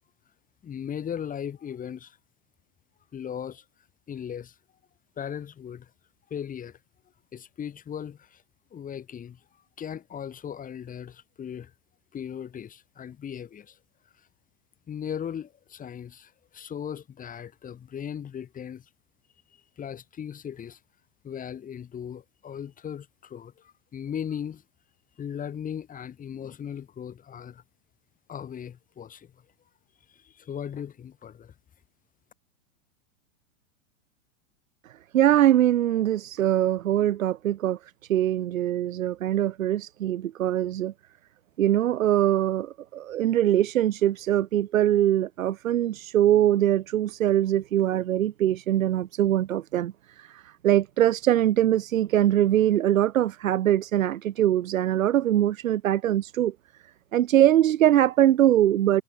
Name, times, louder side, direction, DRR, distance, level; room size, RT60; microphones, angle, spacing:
voice 1, 0.6-2.2 3.1-3.6 4.1-4.5 5.2-5.9 6.3-6.8 7.3-8.4 8.7-9.4 9.8-11.7 12.1-13.8 14.9-18.9 19.8-20.8 21.2-24.6 25.2-27.6 28.3-29.3 30.1-31.5, left 8 dB, 20° left, 4.3 m, -37 dB
voice 2, 35.1-40.9 41.6-56.5 57.1-59.0, right 12 dB, 80° right, 2.2 m, -22 dB
hypercardioid pair, 135°, 39 cm